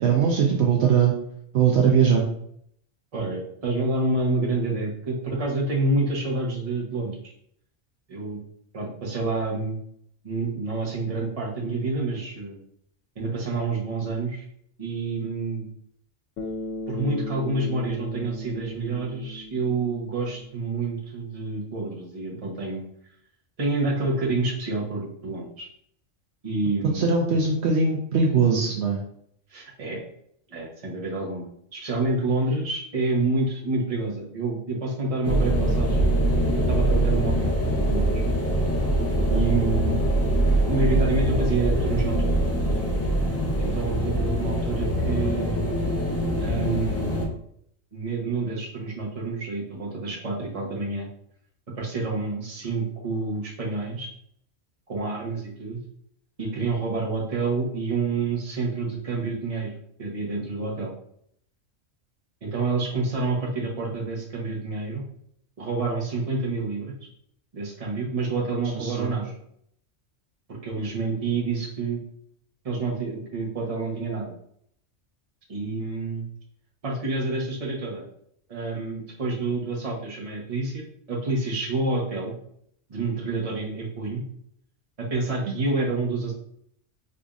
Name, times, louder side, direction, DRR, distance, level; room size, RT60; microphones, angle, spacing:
voice 1, 0.0-1.1 1.5-2.2 26.9-29.0 68.7-69.1, right 6 dB, 70° right, 0 dB, 0.8 m, -20 dB
voice 2, 3.1-7.3 8.1-8.4 8.7-9.8 10.2-12.6 13.1-14.4 14.8-15.7 16.9-22.8 23.6-25.7 26.4-27.1 29.5-30.0 30.5-36.1 36.5-38.2 39.3-40.0 40.7-42.4 43.6-45.8 46.4-47.3 47.9-51.1 51.8-54.1 54.9-55.8 56.4-59.7 60.0-60.9 62.4-65.0 65.6-66.9 67.5-69.3 70.5-72.0 72.6-74.3 75.5-76.2 76.8-78.0 78.5-82.3 82.9-84.2 85.0-86.3, right 3 dB, 35° right, -3 dB, 0.9 m, -28 dB
Bass guitar, 16.4-20.7, left 1 dB, 80° left, 1.0 m, -37 dB
sound 1, 35.2-47.3, right 1 dB, 25° left, 0.3 m, -23 dB
5.0 x 2.5 x 2.4 m, 0.68 s
omnidirectional pair, 1.3 m